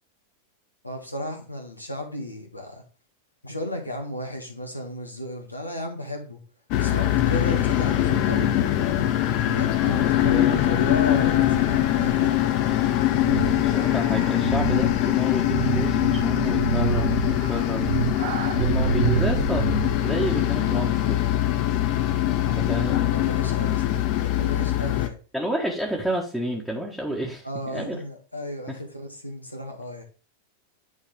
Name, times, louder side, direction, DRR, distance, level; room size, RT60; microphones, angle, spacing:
voice 1, 0.8-2.8 3.4-6.4 6.8-8.6 9.5-12.4 22.4-22.6 23.1-25.2 27.4-30.0, left 1 dB, 85° left, 3 dB, 1.7 m, -34 dB
sound 1, 6.7-25.1, left 13 dB, 45° left, 0.9 m, -23 dB
voice 2, 10.3-10.8 13.3-17.9 18.6-21.2 22.5-23.0 25.3-28.0 28.7-28.8, right 1 dB, ahead, -3 dB, 1.5 m, -30 dB
sound 2, 13.2-20.1, right 9 dB, 55° right, 0.7 m, -28 dB
9.6 x 4.1 x 3.6 m, 0.37 s
figure-of-eight pair, 90°, 0 cm